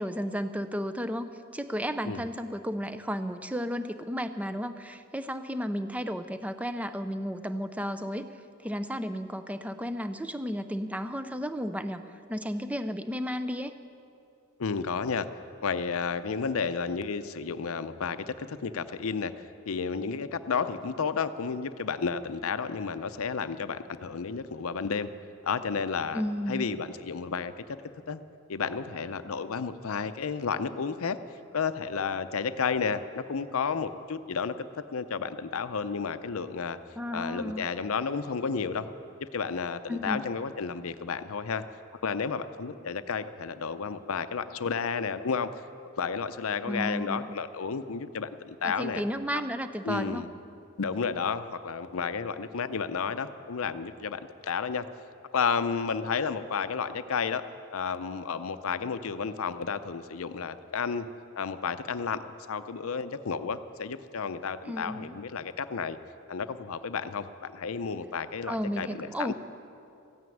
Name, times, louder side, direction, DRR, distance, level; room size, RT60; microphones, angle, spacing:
voice 1, 0.0-8.4 8.6-12.0 12.3-13.7 26.1-26.8 37.0-37.7 39.9-40.2 46.7-47.3 48.6-50.3 64.7-65.1 68.4-69.3, equal, 5° right, 10 dB, 0.5 m, -33 dB
voice 2, 14.6-15.3 15.6-25.1 25.4-26.2 26.5-27.6 28.1-28.2 28.5-31.2 31.5-34.6 34.9-36.8 37.1-38.9 39.2-41.6 42.0-45.5 46.0-49.0 49.8-50.3 50.8-54.9 55.3-57.4 57.7-61.1 61.4-66.0 66.3-69.3, left 5 dB, 75° left, 12 dB, 0.6 m, -32 dB
15.0 x 9.4 x 9.2 m, 2.6 s
head